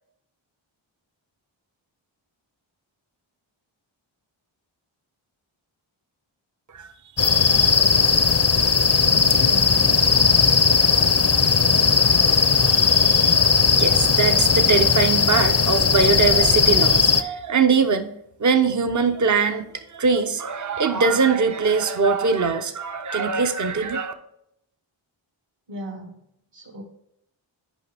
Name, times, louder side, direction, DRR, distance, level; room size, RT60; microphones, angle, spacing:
sound 1, 7.2-17.2, left 5 dB, 30° left, 0.6 m, -18 dB
voice 1, 9.1-9.9 25.7-26.2 26.5-26.8, equal, 60° right, 1 dB, 2.1 m, -36 dB
voice 2, 13.8-18.1 18.4-24.1, right 5 dB, 40° right, 7 dB, 0.8 m, -22 dB
8.4 x 5.2 x 3.4 m, 0.75 s
cardioid pair, 55°, 48 cm